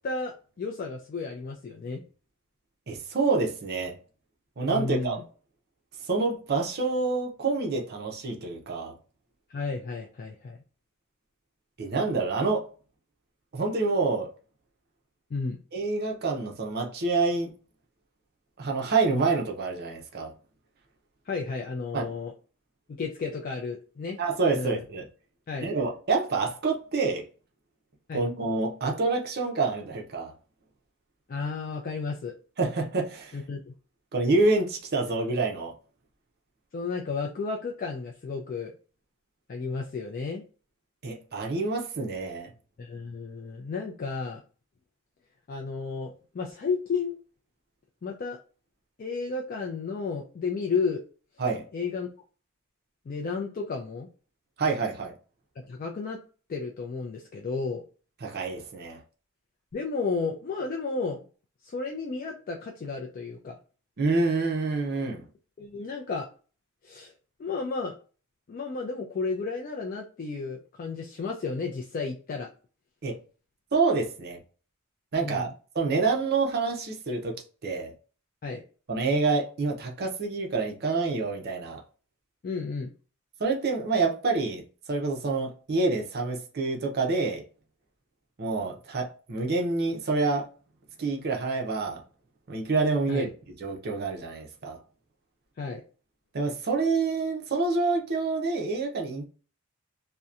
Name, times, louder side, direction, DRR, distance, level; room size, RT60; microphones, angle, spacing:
voice 1, 0.0-2.0 4.7-5.2 9.5-10.6 15.3-15.6 21.3-22.3 23.0-24.2 24.5-24.8 25.5-25.7 28.1-28.3 31.3-32.3 33.3-33.7 36.7-38.7 39.5-40.4 42.8-44.4 45.5-47.1 48.0-48.4 49.0-51.0 51.7-52.1 53.1-54.1 55.6-56.2 56.5-57.8 59.7-61.2 61.6-63.6 65.6-66.3 66.8-67.1 67.4-67.9 68.5-72.5 75.2-75.5 78.4-78.6 82.4-82.9 93.1-93.3 95.6-95.8, left 4 dB, 40° left, 0.3 m, -32 dB
voice 2, 2.9-3.9 4.6-5.2 6.0-8.9 11.8-12.7 13.5-14.3 15.7-17.5 18.6-20.3 21.9-22.1 24.2-25.1 25.6-27.3 28.1-30.3 32.6-33.4 34.1-35.7 41.0-42.5 51.4-51.6 54.6-55.1 58.2-59.0 64.0-65.2 73.0-73.2 73.7-74.4 75.1-75.5 75.7-77.4 77.6-77.9 78.9-81.8 83.4-84.6 84.9-87.4 88.4-90.5 91.0-92.0 92.5-93.3 93.6-94.8 96.3-99.3, right 3 dB, 50° right, 0.6 m, -27 dB
2.7 x 2.1 x 2.3 m
head